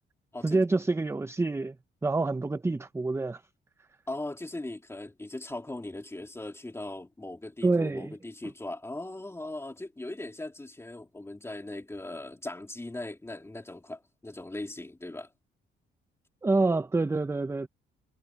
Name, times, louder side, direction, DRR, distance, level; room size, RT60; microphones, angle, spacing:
voice 1, 0.4-1.7 2.0-3.4 7.6-8.1 16.4-17.7, right 3 dB, 15° right, 0.6 m, -27 dB
voice 2, 4.1-15.3, left 2 dB, 15° left, 3.1 m, -39 dB
cardioid pair, 90°, 20 cm